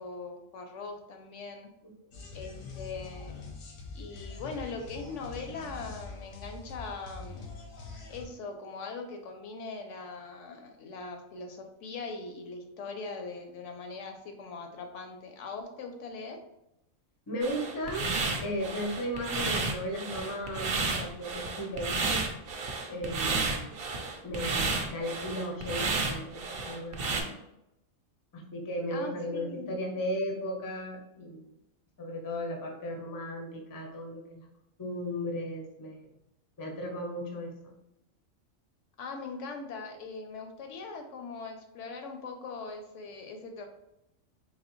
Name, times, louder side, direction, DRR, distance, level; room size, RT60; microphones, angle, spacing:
voice 1, 0.0-1.7 2.3-3.4 3.9-7.4 8.1-16.4 28.9-29.7 39.0-43.7, left 4 dB, 70° left, 5 dB, 0.9 m, -41 dB
sound 1, 2.1-8.3, left 4 dB, 90° left, 1.3 m, -44 dB
voice 2, 17.3-18.1 18.4-22.3 22.9-23.8 24.2-27.4 28.3-31.5 32.0-34.5 34.8-36.0 36.6-37.7, equal, 25° left, 1 dB, 0.4 m, -36 dB
sound 2, 17.4-27.2, right 3 dB, 55° right, 0.7 m, -32 dB
4.0 x 2.8 x 3.0 m, 0.85 s
omnidirectional pair, 1.4 m